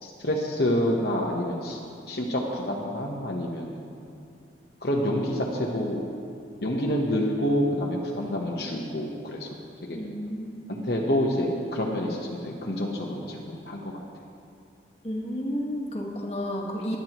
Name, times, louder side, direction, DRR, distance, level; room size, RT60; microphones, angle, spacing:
voice 1, 0.0-1.8 2.1-3.7 4.8-6.0 6.6-9.5 9.9-10.0 10.7-13.9, equal, 60° left, -2 dB, 1.1 m, -27 dB
voice 2, 9.9-10.7 15.0-17.0, equal, 35° left, -2 dB, 1.6 m, -32 dB
20.0 x 10.5 x 3.0 m, 2.6 s
head